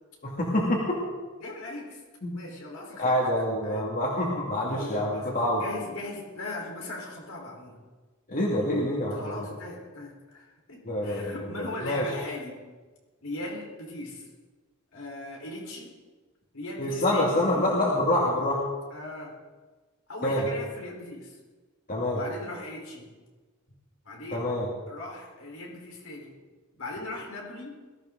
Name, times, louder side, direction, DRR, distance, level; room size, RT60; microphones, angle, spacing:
voice 1, 0.2-1.0 2.2-2.3 3.0-5.6 8.3-9.2 10.9-12.0 16.8-18.6 20.2-20.5 21.9-22.2 24.3-24.7, left 1 dB, 45° left, -3 dB, 2.5 m, -26 dB
voice 2, 1.4-2.0 2.3-3.9 4.7-7.8 9.1-12.5 13.2-14.3 14.9-15.9 16.5-17.5 18.9-19.4 20.1-21.4 22.1-23.1 24.0-24.5 24.9-26.3 26.7-27.8, left 2 dB, 80° left, -1 dB, 4.4 m, -39 dB
21.0 x 14.0 x 3.9 m, 1.3 s
head